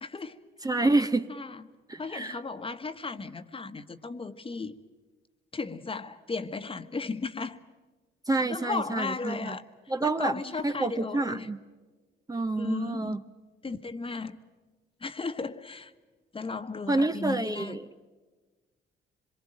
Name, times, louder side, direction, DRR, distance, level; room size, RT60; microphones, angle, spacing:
voice 1, 0.0-0.4 0.8-0.9 1.3-1.6 2.0-4.8 5.5-7.6 8.5-9.6 10.0-11.5 12.6-13.3 13.6-14.4 15.0-15.9 16.3-17.8, left 4 dB, 25° left, 10 dB, 1.3 m, -35 dB
voice 2, 0.6-1.3 1.9-2.4 8.3-9.6 9.9-10.3 10.6-11.6 12.3-13.2 16.9-17.8, right 2 dB, 20° right, 9 dB, 0.9 m, -28 dB
25.5 x 23.0 x 8.9 m, 1.3 s
cardioid pair, 90°, 20 cm